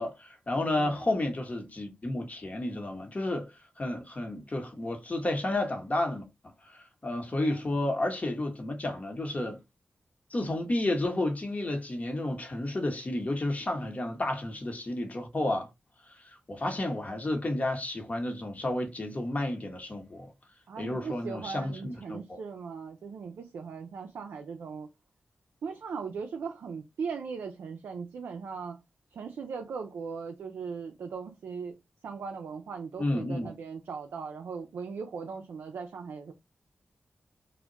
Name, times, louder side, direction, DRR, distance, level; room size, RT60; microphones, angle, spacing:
voice 1, 0.0-3.5 3.8-6.2 6.7-9.6 10.3-15.7 16.5-20.3 20.8-22.4 33.0-33.5, left 1 dB, 40° left, 0.9 m, -31 dB
voice 2, 0.6-1.0 7.3-7.5 20.7-24.9 25.6-28.8 29.1-31.8 32.0-36.3, right 5 dB, 80° right, 0.3 m, -39 dB
2.2 x 2.1 x 3.7 m
cardioid pair, 40°, 4 cm